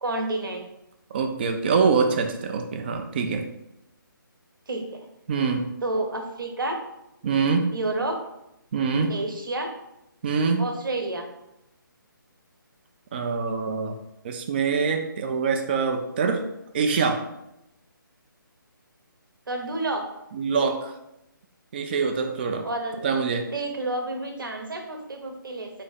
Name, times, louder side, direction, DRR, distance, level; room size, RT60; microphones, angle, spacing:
voice 1, 0.0-0.7 4.7-5.0 5.8-6.8 7.7-8.1 9.1-9.7 10.6-11.2 19.5-20.0 22.6-22.9 23.5-25.7, right 2 dB, 70° right, 4 dB, 0.9 m, -29 dB
voice 2, 1.1-3.5 5.3-5.7 7.2-7.8 8.7-9.2 10.2-10.7 13.1-13.9 14.2-16.5 16.7-17.2 20.3-20.9 21.7-22.7 23.0-23.5, right 5 dB, 30° right, 4 dB, 0.3 m, -24 dB
4.1 x 2.7 x 3.9 m, 0.85 s
figure-of-eight pair, 150°, 12 cm